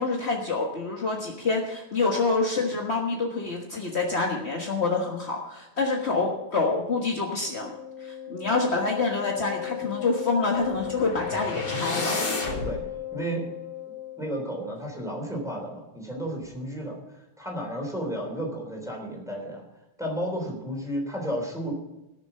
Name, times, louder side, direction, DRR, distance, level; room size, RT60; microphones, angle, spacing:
voice 1, 0.0-7.7 8.0-12.3, left 3 dB, 55° left, 0 dB, 0.7 m, -27 dB
Wind instrument woodwind instrument, 7.4-14.4, left 13 dB, 65° right, 6.0 m, -36 dB
sound 1, 10.6-12.8, left 2 dB, 25° left, 3.6 m, -31 dB
voice 2, 13.1-13.4 14.2-19.6 20.0-21.7, equal, ahead, -1 dB, 3.2 m, -32 dB
18.0 x 6.8 x 5.5 m, 0.96 s
omnidirectional pair, 3.4 m